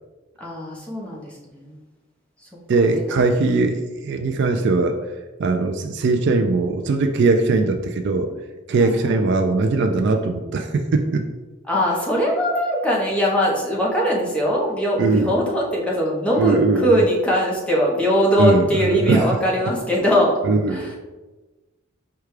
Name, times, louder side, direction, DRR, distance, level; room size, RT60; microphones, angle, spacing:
voice 1, 0.4-1.8 2.9-3.2 4.2-4.7 8.8-9.2 11.7-20.3 20.7-20.9, equal, 5° left, -4 dB, 0.8 m, -21 dB
voice 2, 2.7-5.0 5.4-8.3 8.7-11.3 15.0-15.3 16.4-17.0 18.4-19.3 20.4-20.8, right 3 dB, 55° right, 5 dB, 0.3 m, -20 dB
4.7 x 2.3 x 4.7 m, 1.2 s
head